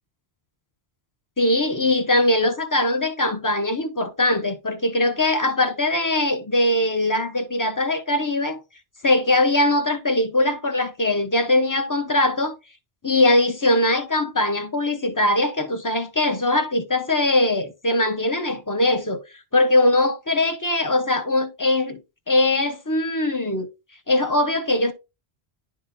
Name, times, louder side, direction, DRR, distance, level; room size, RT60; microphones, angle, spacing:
voice 1, 1.4-8.6 9.0-12.6 13.0-19.2 19.5-22.0 22.3-23.7 24.1-24.9, left 1 dB, 20° left, 0.7 m, -21 dB
11.0 x 3.7 x 2.6 m
omnidirectional pair, 1.1 m